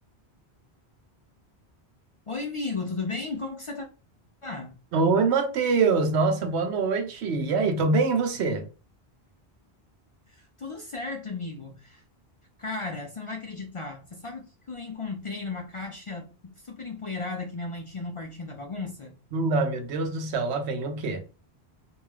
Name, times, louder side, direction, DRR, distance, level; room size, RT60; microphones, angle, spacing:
voice 1, 2.3-3.9 4.4-4.7 10.3-12.0 12.6-19.2, left 3 dB, 55° left, 0.3 m, -35 dB
voice 2, 4.9-8.7 19.3-21.2, right 4 dB, 90° right, 0.9 m, -24 dB
2.7 x 2.3 x 3.1 m
omnidirectional pair, 1.1 m